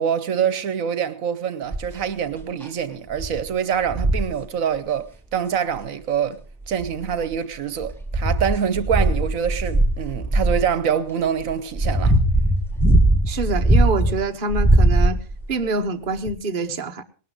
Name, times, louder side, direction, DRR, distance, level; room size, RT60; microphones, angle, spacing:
voice 1, 0.0-6.4 6.7-12.2, right 8 dB, 75° right, 1.3 m, -25 dB
sound 1, 1.7-2.0 2.6-2.7 3.2-3.4 3.9-4.3 5.7-5.8 6.6-7.3 7.8-10.7 11.4-14.1 14.5-15.4 16.3-16.4, right 1 dB, ahead, 1.7 m, -19 dB
voice 2, 13.3-15.2 15.5-17.0, right 3 dB, 40° right, 1.1 m, -25 dB
19.0 x 12.5 x 3.8 m
omnidirectional pair, 1.4 m